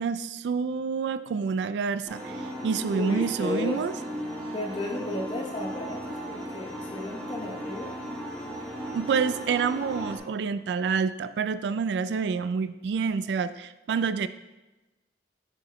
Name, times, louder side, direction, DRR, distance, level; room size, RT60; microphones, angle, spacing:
voice 1, 0.0-3.9 8.9-14.3, right 5 dB, 70° right, 13 dB, 0.3 m, -28 dB
sound 1, 2.1-10.2, equal, 5° left, 1.6 m, -36 dB
voice 2, 2.9-3.8 4.5-7.9, left 2 dB, 30° left, 0 dB, 1.1 m, -34 dB
8.5 x 4.9 x 3.1 m, 1.1 s
head